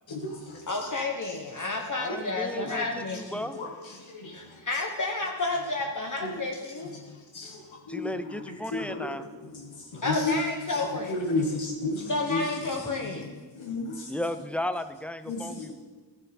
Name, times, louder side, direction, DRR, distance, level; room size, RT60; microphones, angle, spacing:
voice 1, 0.1-0.6 2.1-2.2 3.5-4.4 6.2-6.4 7.1-8.1 8.5-10.3 10.7-12.4 13.6-14.1 15.3-15.7, left 3 dB, 90° left, 0 dB, 1.2 m, -33 dB
voice 2, 0.7-3.5 4.3-6.9 10.0-11.3 12.1-13.3, left 3 dB, 45° left, 1 dB, 1.0 m, -31 dB
voice 3, 2.0-2.9 3.1-3.7 7.9-9.3 14.1-15.7, left 1 dB, 5° left, 11 dB, 0.4 m, -34 dB
12.5 x 6.9 x 4.2 m, 1.3 s
wide cardioid pair, 60°, 45 cm